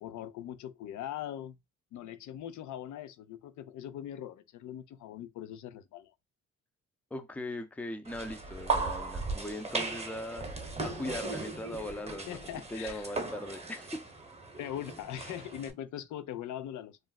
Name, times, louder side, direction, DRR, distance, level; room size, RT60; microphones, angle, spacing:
voice 1, 0.0-1.5 1.9-6.1 12.3-13.1 14.6-17.0, left 11 dB, 75° left, 0.5 m, -41 dB
voice 2, 7.1-10.5 10.8-12.4 12.7-14.0, left 1 dB, 5° left, 0.5 m, -39 dB
sound 1, 8.1-15.7, right 3 dB, 20° right, 0.9 m, -37 dB
2.4 x 2.0 x 3.9 m
cardioid pair, 90°, 30 cm